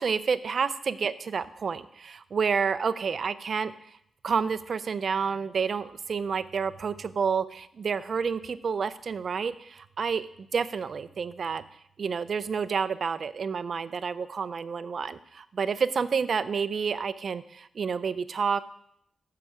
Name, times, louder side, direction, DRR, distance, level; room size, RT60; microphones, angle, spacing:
voice 1, 0.0-3.7 4.2-11.6 12.0-18.6, right 6 dB, 55° right, 14 dB, 0.5 m, -29 dB
14.5 x 5.8 x 5.0 m, 0.73 s
cardioid pair, 85°, 0 cm